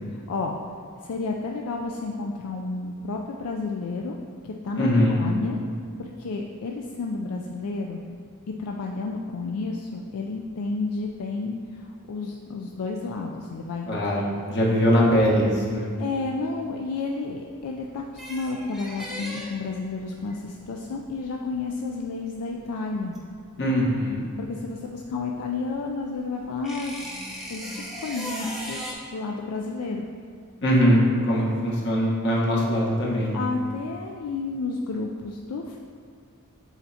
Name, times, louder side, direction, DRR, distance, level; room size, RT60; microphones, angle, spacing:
voice 1, 0.1-0.6 1.0-4.2 4.4-5.6 6.0-8.0 8.6-13.9 16.0-23.2 24.4-26.9 27.5-28.8 29.1-30.1 33.3-35.8, left 3 dB, 80° left, 0 dB, 0.4 m, -31 dB
voice 2, 4.8-5.2 13.9-15.9 23.6-24.2 30.6-33.4, equal, 55° left, -5 dB, 1.2 m, -21 dB
sound 1, 17.7-24.0 24.3-28.9, equal, ahead, 0.7 m, -38 dB
8.1 x 4.4 x 2.7 m, 2.2 s
head